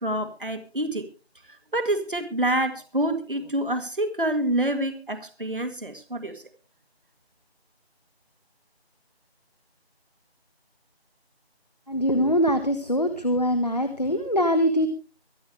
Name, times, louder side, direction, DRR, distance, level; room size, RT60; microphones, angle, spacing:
voice 1, 0.0-1.1 1.7-6.4, right 1 dB, 55° right, 8 dB, 2.1 m, -27 dB
voice 2, 11.9-14.9, equal, 40° left, 8 dB, 1.4 m, -23 dB
24.5 x 9.4 x 3.3 m, 0.34 s
figure-of-eight pair, 180°, 32 cm